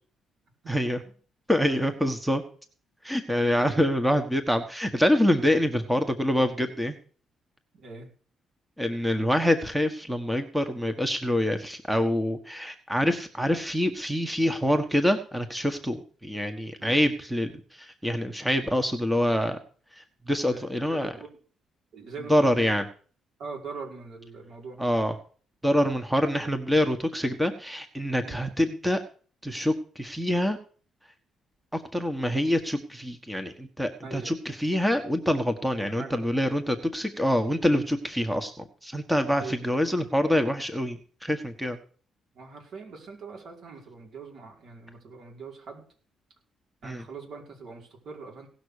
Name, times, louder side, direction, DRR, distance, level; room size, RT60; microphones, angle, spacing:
voice 1, 0.7-1.0 1.5-2.4 3.0-6.9 8.8-19.6 19.9-21.1 22.3-22.8 24.8-25.2 25.6-29.0 29.4-30.6 31.7-41.8 46.8-47.0, equal, 5° right, 7 dB, 1.4 m, -26 dB
voice 2, 1.7-2.0 7.7-8.1 16.8-17.0 20.5-20.6 20.9-21.4 21.9-22.8 23.4-24.8 28.2-28.4 34.0-34.3 35.8-36.2 39.4-39.7 42.3-45.8 46.8-48.5, right 4 dB, 65° right, 0 dB, 5.2 m, -42 dB
17.5 x 6.1 x 6.7 m, 0.42 s
cardioid pair, 90°, 0 cm